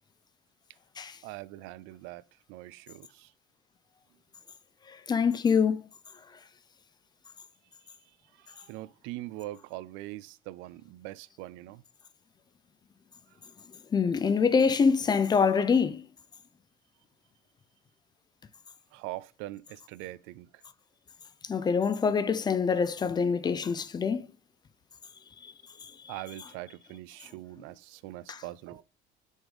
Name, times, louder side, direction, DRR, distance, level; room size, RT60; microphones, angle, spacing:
voice 1, 1.2-2.2 2.5-3.3 8.5-11.8 18.9-20.5 26.1-28.8, right 17 dB, 85° right, 0.4 m, -42 dB
voice 2, 5.1-5.8 13.9-16.0 21.5-24.3 28.3-28.4, left 5 dB, 20° left, 0.4 m, -25 dB
6.2 x 3.6 x 4.9 m
cardioid pair, 145°, 20 cm